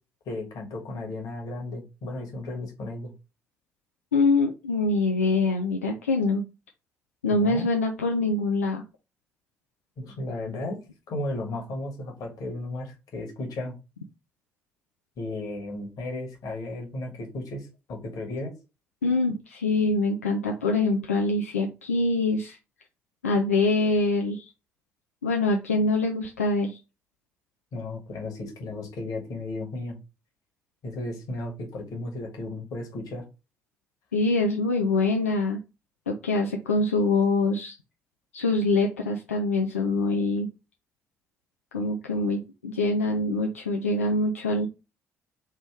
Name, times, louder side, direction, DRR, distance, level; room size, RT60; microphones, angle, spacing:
voice 1, 0.2-3.1 7.3-7.7 10.0-10.8 11.1-13.7 15.2-18.5 27.7-30.0 30.8-33.2, left 2 dB, 55° left, 0 dB, 1.4 m, -34 dB
voice 2, 4.1-6.4 7.2-8.8 19.0-22.6 23.2-24.5 25.2-26.8 34.1-35.6 36.1-37.8 38.3-40.5 41.7-44.7, left 3 dB, 85° left, 1 dB, 0.4 m, -24 dB
3.4 x 3.0 x 4.6 m, 0.29 s
figure-of-eight pair, 45°, 7 cm